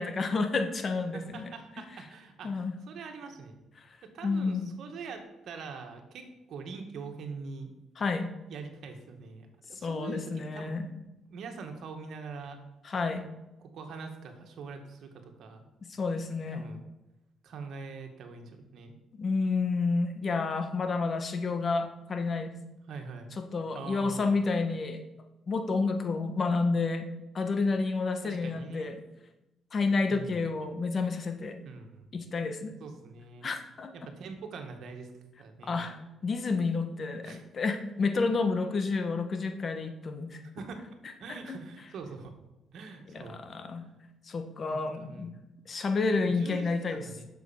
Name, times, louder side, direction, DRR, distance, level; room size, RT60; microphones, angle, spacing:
voice 1, 0.0-1.5 1.9-2.0 2.4-2.8 4.2-4.8 8.0-8.3 9.7-10.9 12.8-13.3 15.9-16.6 19.2-22.5 23.4-25.0 25.5-27.1 27.3-28.9 29.7-31.6 32.1-32.8 33.4-33.9 35.6-40.4 41.3-41.4 43.1-43.9 44.2-45.4 45.6-47.0, left 4 dB, 45° left, 7 dB, 1.4 m, -30 dB
voice 2, 1.1-3.6 4.0-7.7 8.5-10.7 11.3-12.6 13.6-15.6 16.5-16.8 17.4-18.9 22.9-23.3 23.7-24.4 28.2-29.0 30.1-30.4 31.6-32.1 32.8-33.5 33.9-35.1 35.4-35.8 37.2-37.4 40.4-40.8 41.2-42.3 42.7-43.4 44.7-45.3 46.2-47.3, right 4 dB, 70° right, 5 dB, 1.9 m, -43 dB
8.1 x 6.9 x 7.2 m, 0.96 s
cardioid pair, 90°, 0 cm